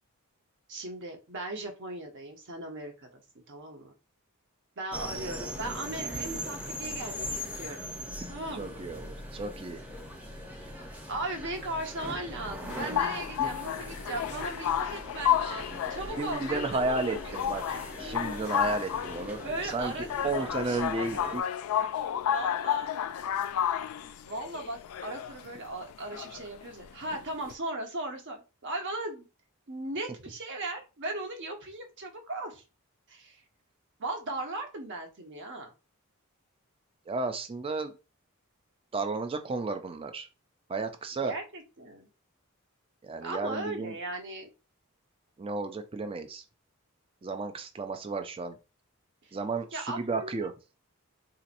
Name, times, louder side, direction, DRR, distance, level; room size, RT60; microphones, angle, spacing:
voice 1, 0.7-3.2 3.5-3.9 4.8-7.9 8.3-8.8 11.1-17.4 19.4-21.3 22.2-22.9 23.8-29.3 29.7-32.6 33.1-33.4 34.0-35.7 41.2-42.1 43.2-44.5 49.2-49.3 49.7-50.5, right 2 dB, 60° right, 3 dB, 1.0 m, -38 dB
sound 1, 4.9-21.4, equal, 10° right, 0.7 m, -41 dB
voice 2, 8.5-9.8 13.4-13.5 16.2-21.4 37.1-38.0 38.9-40.3 40.7-41.3 43.0-44.0 45.4-46.4 47.2-48.6 49.3-50.5, right 3 dB, 25° right, 8 dB, 0.4 m, -33 dB
sound 2, 12.7-27.5, left 10 dB, 80° left, 0.3 m, -32 dB
3.9 x 2.9 x 2.5 m, 0.30 s
head